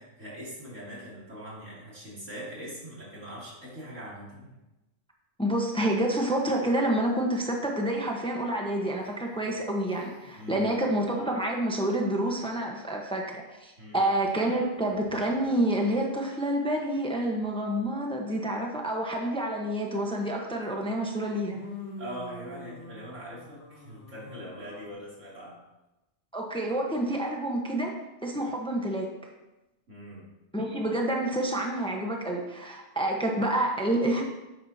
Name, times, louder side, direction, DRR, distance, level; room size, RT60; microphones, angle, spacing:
voice 1, 0.0-4.6 10.4-10.7 13.8-14.0 22.0-25.6 29.9-30.3, equal, 85° right, -6 dB, 3.2 m, -42 dB
voice 2, 5.4-21.6 26.3-29.1 30.5-34.2, right 1 dB, 5° left, 0 dB, 1.0 m, -28 dB
sound 1, 8.6-10.5 14.6-15.6 20.6-20.7 21.5-24.9, left 2 dB, 85° left, 2.5 m, -46 dB
10.5 x 7.9 x 2.8 m, 1.0 s
omnidirectional pair, 1.2 m